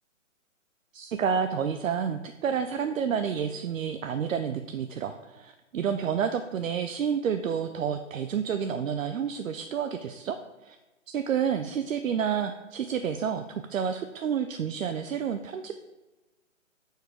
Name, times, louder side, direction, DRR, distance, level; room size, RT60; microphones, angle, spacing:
voice 1, 0.9-10.4 10.6-10.8 11.1-15.7, right 7 dB, 80° right, 7 dB, 0.5 m, -29 dB
4.8 x 4.5 x 4.9 m, 1.1 s
hypercardioid pair, 155°, 40 cm